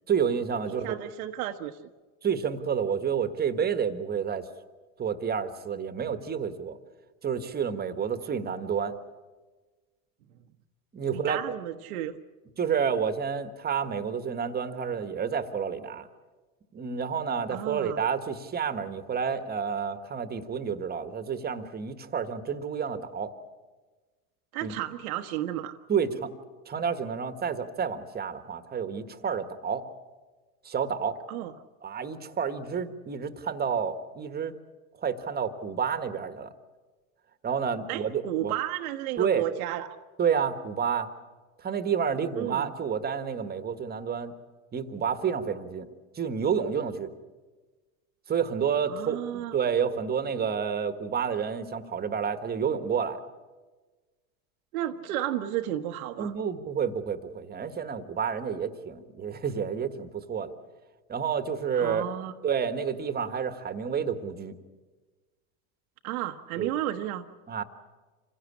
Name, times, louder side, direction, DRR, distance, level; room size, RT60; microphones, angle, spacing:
voice 1, 0.1-1.1 2.2-4.5 5.0-6.8 7.2-9.0 10.9-11.4 12.6-16.1 16.7-23.3 24.6-24.8 25.9-26.3 26.7-29.8 30.6-31.2 31.8-34.5 35.0-36.5 37.4-38.5 39.2-39.4 40.2-41.1 41.6-44.3 44.7-45.9 46.1-47.1 48.3-53.2 56.2-60.5 61.1-62.0 62.4-64.6 66.6-66.7 67.5-67.6, right 7 dB, 20° right, 10 dB, 1.5 m, -29 dB
voice 2, 0.7-1.9 11.1-12.1 17.5-18.0 24.5-25.8 31.3-31.5 37.9-40.0 42.4-42.7 48.9-49.5 54.7-56.3 61.7-62.3 66.0-67.3, right 12 dB, 70° right, 6 dB, 1.1 m, -33 dB
26.5 x 16.5 x 8.6 m, 1.3 s
supercardioid pair, 115°, 44 cm